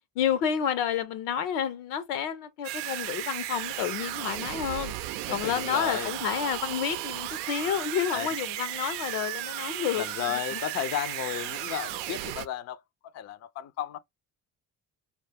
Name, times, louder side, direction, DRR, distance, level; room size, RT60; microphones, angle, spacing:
voice 1, 0.2-4.9 5.3-10.0 10.5-10.6, left 8 dB, 80° left, 0.8 m, -30 dB
sound 1, 2.6-12.5, right 14 dB, 70° right, 0.6 m, -35 dB
voice 2, 5.3-6.1 8.1-8.3 10.0-14.0, left 11 dB, 35° left, 0.5 m, -34 dB
4.4 x 2.3 x 2.8 m
hypercardioid pair, 55°, 45 cm